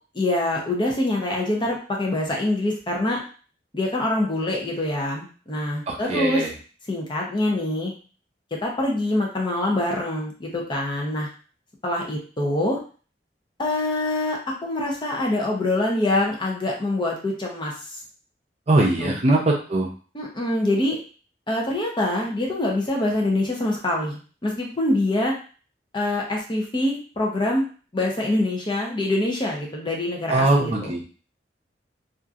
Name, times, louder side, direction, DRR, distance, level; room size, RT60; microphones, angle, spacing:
voice 1, 0.1-3.2 3.7-6.4 6.9-7.9 8.6-11.3 11.8-12.8 13.6-18.0 18.8-19.2 20.1-21.0 21.5-25.3 25.9-27.6 27.9-30.9, left 1 dB, 25° left, -1 dB, 0.7 m, -25 dB
voice 2, 5.9-6.5 18.7-19.9 30.3-31.0, right 2 dB, 40° right, -1 dB, 0.6 m, -21 dB
2.8 x 2.5 x 2.4 m, 0.38 s
head